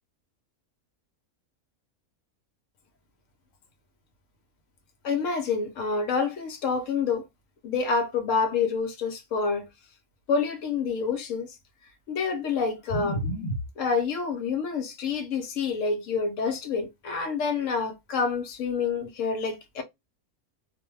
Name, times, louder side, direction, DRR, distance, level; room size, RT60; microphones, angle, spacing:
voice 1, 5.0-7.2 7.6-9.7 10.3-11.6 12.1-19.8, left 5 dB, 70° left, 0.9 m, -28 dB
2.5 x 2.1 x 3.1 m
omnidirectional pair, 1.5 m